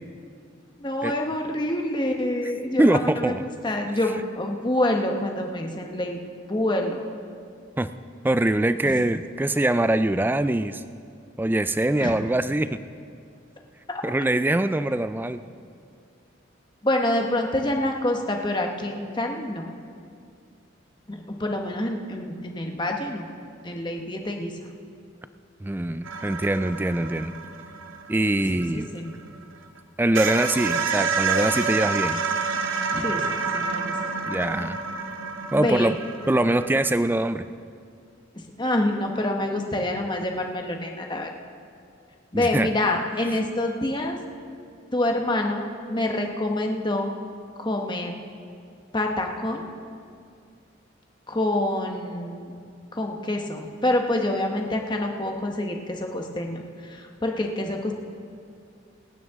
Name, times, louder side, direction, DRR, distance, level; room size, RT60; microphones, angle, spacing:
voice 1, 0.8-6.2 6.5-7.0 8.8-9.0 12.0-12.2 13.9-14.0 16.8-19.6 21.1-23.3 23.6-24.5 28.4-29.1 32.9-33.9 35.5-35.9 38.4-41.3 42.3-44.2 44.9-47.1 47.6-48.1 48.9-49.7 51.3-52.5 52.9-57.9, left 1 dB, 25° left, 3 dB, 1.1 m, -27 dB
voice 2, 2.8-3.4 7.8-7.9 8.2-10.8 11.4-12.8 14.0-15.4 25.6-27.4 28.1-28.9 30.0-32.2 34.3-34.8 35.5-36.0 36.3-37.4 42.3-42.7, right 1 dB, 10° right, 12 dB, 0.3 m, -23 dB
sound 1, 26.0-29.4 29.8-29.9 30.1-36.9, right 5 dB, 90° right, 1.2 m, -28 dB
27.0 x 9.4 x 3.6 m, 2.3 s
head